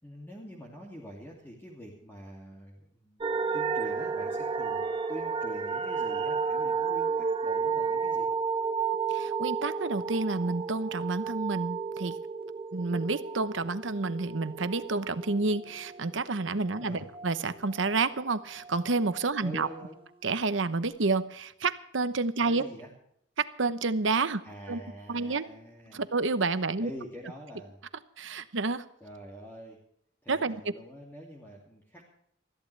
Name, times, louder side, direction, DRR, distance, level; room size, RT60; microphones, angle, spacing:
voice 1, 0.0-8.3 16.8-17.0 19.4-20.0 22.4-22.9 24.4-26.0 26.8-27.8 29.0-29.8 30.2-32.0, equal, 10° left, -3 dB, 2.5 m, -45 dB
sound 1, 3.2-18.1 18.4-19.8 20.3-20.4, right 5 dB, 30° right, 1.0 m, -32 dB
voice 2, 9.1-12.2 12.7-19.7 20.2-22.6 23.4-24.4 24.7-24.8 25.1-25.4 25.9-26.9 28.2-28.9 30.3-30.6, right 3 dB, 85° right, 12 dB, 0.9 m, -29 dB
21.0 x 14.5 x 3.4 m, 0.72 s
head